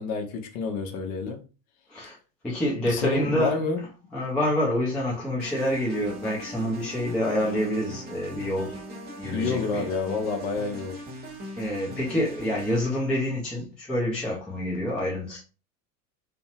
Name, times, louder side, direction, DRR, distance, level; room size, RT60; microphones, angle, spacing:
voice 1, 0.0-1.4 2.8-3.8 9.3-11.0, left 4 dB, 40° left, 0.7 m, -29 dB
voice 2, 2.4-3.6 4.1-8.8 9.2-9.9 11.6-15.4, left 1 dB, 5° left, 0.3 m, -27 dB
sound 1, 5.4-13.0, equal, 20° right, 1.0 m, -40 dB
2.6 x 2.1 x 2.6 m
figure-of-eight pair, 75°, 47 cm